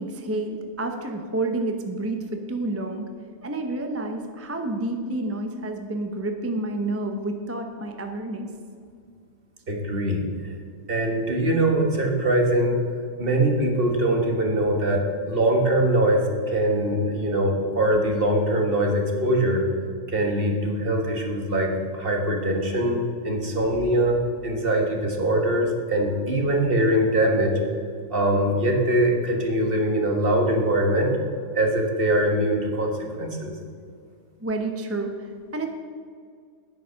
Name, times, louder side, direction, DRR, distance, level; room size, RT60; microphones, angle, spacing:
voice 1, 0.0-3.1 3.4-8.5 34.4-35.7, right 2 dB, 15° right, 4 dB, 0.6 m, -29 dB
voice 2, 9.7-10.5 10.9-12.8 13.2-16.2 16.5-19.6 20.1-24.2 24.4-27.5 28.1-31.1 31.5-32.9 33.2-33.5, right 1 dB, 50° right, 1 dB, 1.8 m, -22 dB
9.5 x 9.2 x 5.7 m, 2.1 s
omnidirectional pair, 1.3 m